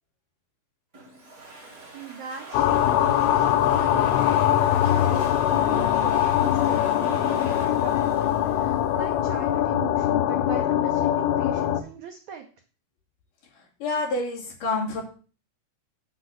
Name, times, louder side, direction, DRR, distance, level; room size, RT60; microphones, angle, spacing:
Domestic sounds home sounds, 0.9-9.4, right 2 dB, 25° right, 3.1 m, -44 dB
voice 1, 1.9-12.5, right 8 dB, 80° right, 4 dB, 1.7 m, -40 dB
sound 1, 2.5-11.8, left 11 dB, 80° left, 2.8 m, -22 dB
voice 2, 13.8-15.0, left 2 dB, 55° left, -1 dB, 3.6 m, -27 dB
7.5 x 6.3 x 7.8 m, 0.38 s
omnidirectional pair, 4.7 m